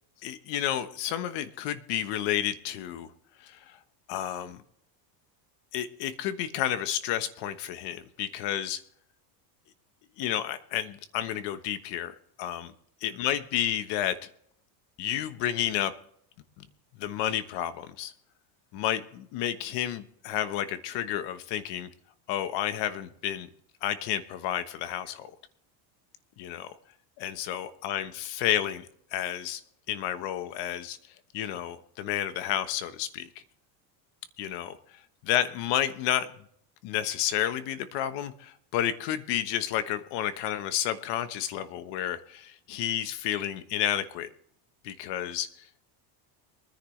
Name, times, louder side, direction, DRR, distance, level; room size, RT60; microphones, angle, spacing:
voice 1, 0.2-3.1 3.4-3.8 4.1-4.6 5.7-8.8 10.2-12.7 13.0-14.3 15.0-15.9 16.6-16.7 17.0-18.1 18.7-21.9 22.3-23.5 23.8-25.3 26.4-26.7 27.2-29.6 29.9-31.0 31.3-33.3 34.4-34.8 35.2-36.3 36.8-44.3 44.8-45.5, left 11 dB, 55° left, 13 dB, 1.2 m, -31 dB
23.0 x 10.5 x 3.3 m, 0.68 s
cardioid pair, 150°, 49 cm